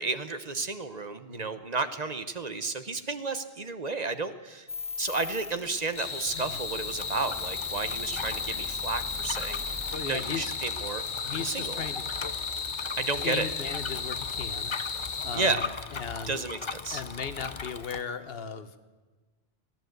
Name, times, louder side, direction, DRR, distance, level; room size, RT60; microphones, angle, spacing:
voice 1, 0.0-4.7 5.0-9.6 10.0-11.0 11.3-11.8 13.0-13.5 15.3-15.7 16.3-17.0, right 3 dB, 45° right, 10 dB, 1.0 m, -32 dB
sound 1, 4.7-10.0, left 4 dB, 5° left, 1.3 m, -39 dB
sound 2, 6.0-15.4, left 5 dB, 50° left, 1.1 m, -35 dB
Bicycle, 6.3-18.0, left 5 dB, 35° left, 0.6 m, -40 dB
voice 2, 9.9-10.5 11.2-12.1 13.2-14.7 15.2-15.6 15.9-16.5 16.9-18.7, left 6 dB, 70° left, 11 dB, 1.2 m, -36 dB
21.5 x 15.5 x 8.0 m, 1.3 s
omnidirectional pair, 1.0 m